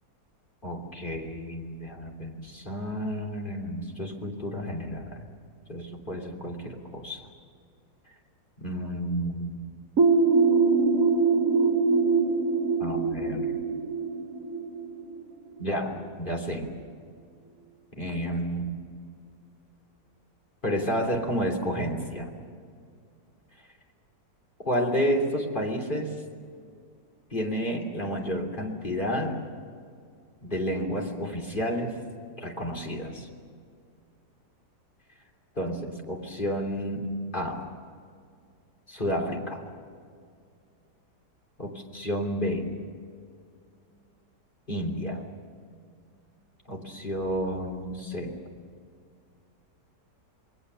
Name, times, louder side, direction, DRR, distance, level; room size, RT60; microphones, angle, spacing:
voice 1, 0.6-5.2 5.7-7.3 8.6-9.6 12.8-13.5 15.6-16.7 18.0-18.8 20.6-22.3 24.6-26.1 27.3-29.4 30.4-32.0 32.4-33.3 35.5-37.6 38.9-39.6 41.6-42.7 44.7-45.2 46.7-48.4, equal, 30° left, 1 dB, 3.4 m, -31 dB
sound 1, 10.0-15.5, right 4 dB, 55° right, 2.1 m, -23 dB
28.0 x 21.5 x 6.8 m, 2.2 s
omnidirectional pair, 1.8 m